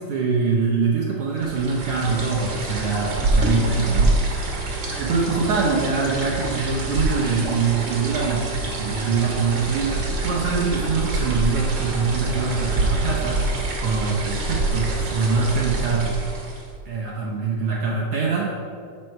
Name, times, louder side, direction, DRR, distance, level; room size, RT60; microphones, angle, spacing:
voice 1, 0.0-4.7 5.0-16.2 16.9-18.5, right 4 dB, 85° right, -3 dB, 1.2 m, -24 dB
sound 1, 1.4-16.8, right 2 dB, 55° right, 1.2 m, -26 dB
7.5 x 4.6 x 6.4 m, 2.3 s
omnidirectional pair, 3.7 m